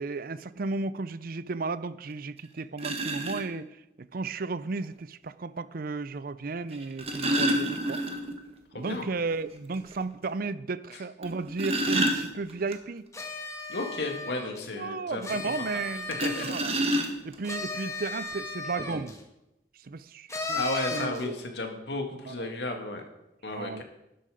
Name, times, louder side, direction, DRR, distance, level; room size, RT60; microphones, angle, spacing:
voice 1, 0.0-3.7 4.0-8.0 8.7-13.0 14.8-16.1 16.4-16.7 17.2-19.1 19.8-20.6 20.9-21.5 22.2-22.5 23.5-23.8, right 3 dB, 55° right, 16 dB, 0.6 m, -34 dB
sound 1, 2.1-2.2 2.8-3.4 4.8-4.9 6.7-8.5 8.8-8.9 9.3-9.4 9.9-10.0 11.2-12.7 16.1-17.5 18.3-18.4 18.8-19.0, right 1 dB, 35° right, 1.5 m, -28 dB
voice 2, 8.7-9.1 13.7-15.2 16.2-16.9 20.6-23.0 23.4-23.8, left 2 dB, 70° left, 4 dB, 2.2 m, -33 dB
sound 2, 13.1-14.6 15.2-16.7 17.4-19.2 20.3-21.3, left 3 dB, 20° left, 1.6 m, -35 dB
12.5 x 11.5 x 5.0 m, 0.91 s
head